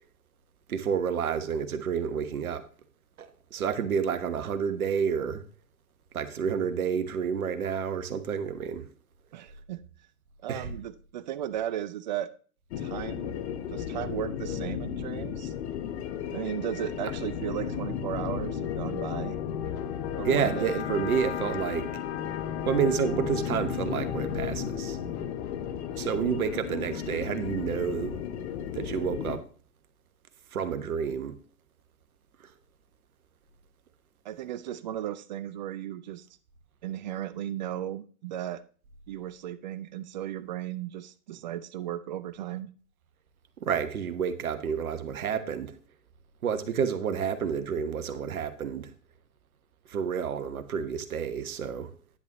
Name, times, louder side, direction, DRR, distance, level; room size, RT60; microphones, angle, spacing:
voice 1, 0.7-2.6 3.2-5.4 6.1-8.9 10.5-10.7 20.2-21.9 22.6-25.0 26.0-28.2 28.7-29.4 30.5-31.4 43.6-45.7 46.4-48.9 49.9-51.9, right 7 dB, 65° right, 1.2 m, -29 dB
voice 2, 9.3-9.8 10.4-12.3 12.8-13.4 13.7-15.5 16.3-19.4 20.2-20.8 34.2-36.3 36.8-38.6 39.1-42.7, right 11 dB, 30° right, 0.4 m, -35 dB
sound 1, 12.7-29.4, left 8 dB, 45° left, 1.2 m, -34 dB
10.5 x 9.8 x 3.0 m
figure-of-eight pair, 110°, 46 cm